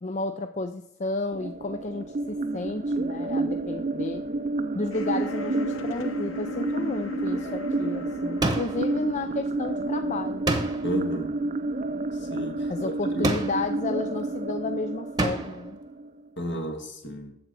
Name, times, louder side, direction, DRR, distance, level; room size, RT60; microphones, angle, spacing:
voice 1, 0.0-4.2 4.7-10.4 12.7-15.8, left 3 dB, 35° left, 7 dB, 0.4 m, -32 dB
sound 1, 1.3-16.3, right 2 dB, 35° right, 0.5 m, -30 dB
sound 2, 4.9-10.8, left 3 dB, 90° left, 0.9 m, -40 dB
sound 3, 8.4-9.0 10.5-11.0 13.2-13.8 15.2-15.7, right 2 dB, 20° right, 1.0 m, -28 dB
voice 2, 10.8-11.3 12.2-13.4 16.4-17.3, equal, 60° left, 3 dB, 1.9 m, -33 dB
7.9 x 7.7 x 5.2 m, 0.76 s
head